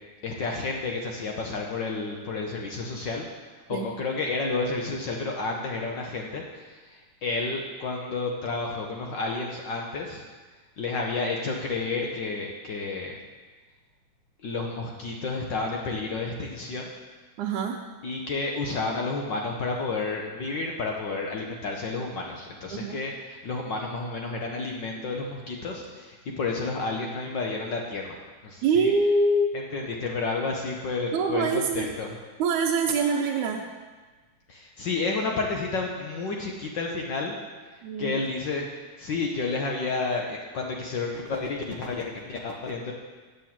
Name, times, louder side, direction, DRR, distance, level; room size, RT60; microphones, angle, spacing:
voice 1, 0.2-3.2 3.7-10.2 10.8-13.2 14.4-16.9 18.0-28.9 29.7-32.1 34.5-37.3 38.0-38.6 39.0-42.9, left 3 dB, 75° left, 0 dB, 1.0 m, -31 dB
voice 2, 17.4-17.8 22.7-23.0 28.6-29.5 31.1-31.9 32.4-33.7 37.8-38.1, right 3 dB, 85° right, -1 dB, 2.2 m, -24 dB
8.3 x 7.9 x 7.4 m, 1.4 s
omnidirectional pair, 3.4 m